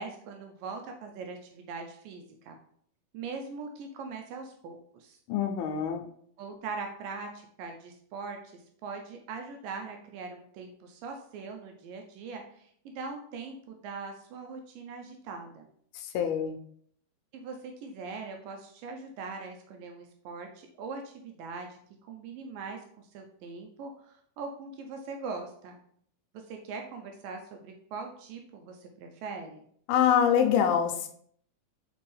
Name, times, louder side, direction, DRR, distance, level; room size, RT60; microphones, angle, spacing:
voice 1, 0.0-2.6 3.1-5.2 6.4-15.7 17.3-21.8 22.1-25.8 26.3-29.7, right 4 dB, 80° right, 3 dB, 2.1 m, -41 dB
voice 2, 5.3-6.1 16.0-16.6 29.9-31.1, left 8 dB, 85° left, 6 dB, 2.5 m, -25 dB
6.8 x 4.5 x 3.2 m, 0.64 s
omnidirectional pair, 4.4 m